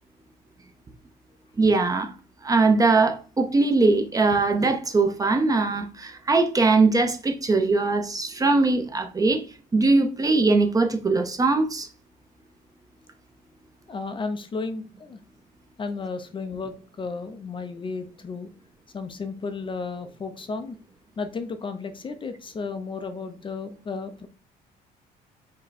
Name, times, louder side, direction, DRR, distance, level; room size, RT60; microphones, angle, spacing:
voice 1, 1.6-2.1 2.4-9.4 9.7-11.9, right 3 dB, 20° right, 0.7 m, -21 dB
voice 2, 13.9-15.2 15.8-18.5 18.9-20.8 21.2-24.3, left 4 dB, 30° left, 0.5 m, -33 dB
5.3 x 2.2 x 4.1 m
cardioid pair, 110°, 17 cm